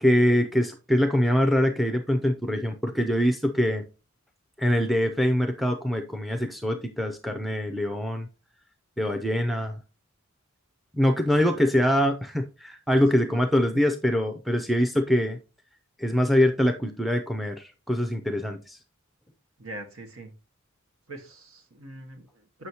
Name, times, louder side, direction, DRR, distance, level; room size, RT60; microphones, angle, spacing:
voice 1, 0.0-3.9 4.6-8.3 9.0-9.8 10.9-15.4 16.0-18.8, equal, ahead, 0.5 m, -24 dB
voice 2, 19.6-20.4 21.1-22.7, right 1 dB, 85° right, 1.4 m, -43 dB
7.8 x 6.1 x 2.8 m
head